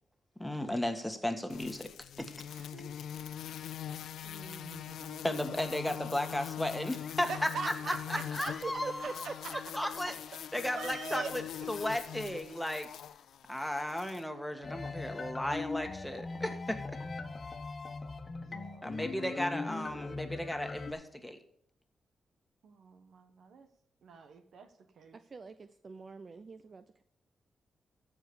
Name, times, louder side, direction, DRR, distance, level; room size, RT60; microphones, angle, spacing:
voice 1, 0.4-1.9 2.2-2.3 5.2-7.7 8.1-9.3 9.7-10.1 10.5-12.9 13.5-17.0 18.8-21.4, left 1 dB, 5° left, 6 dB, 1.7 m, -35 dB
sound 1, 1.5-14.2, left 10 dB, 90° left, 0.3 m, -43 dB
voice 2, 2.5-3.0 4.2-5.2 7.2-8.5 9.4-9.5 10.1-10.2 10.8-11.3 18.4-19.0 22.6-23.7 24.0-24.7 25.0-25.2, right 5 dB, 80° right, 9 dB, 1.2 m, -43 dB
voice 3, 8.6-9.6 10.0-10.1 25.1-27.0, right 4 dB, 50° right, 11 dB, 0.6 m, -43 dB
sound 2, 14.6-20.9, left 3 dB, 40° left, 1.4 m, -40 dB
14.0 x 5.0 x 6.9 m, 0.66 s
cardioid pair, 70°, 0 cm